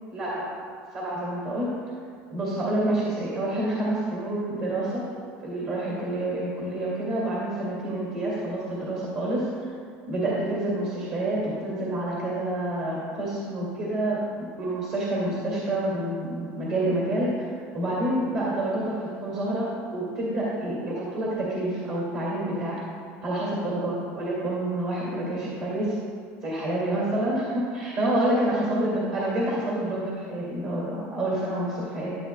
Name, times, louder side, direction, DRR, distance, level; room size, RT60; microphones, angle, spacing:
voice 1, 0.1-0.5 0.9-1.7 2.3-5.0 5.4-9.7 10.1-22.8 23.2-25.9 26.4-32.1, right 1 dB, 45° right, -5 dB, 2.2 m, -28 dB
13.5 x 8.0 x 2.2 m, 2.1 s
cardioid pair, 150°, 5 cm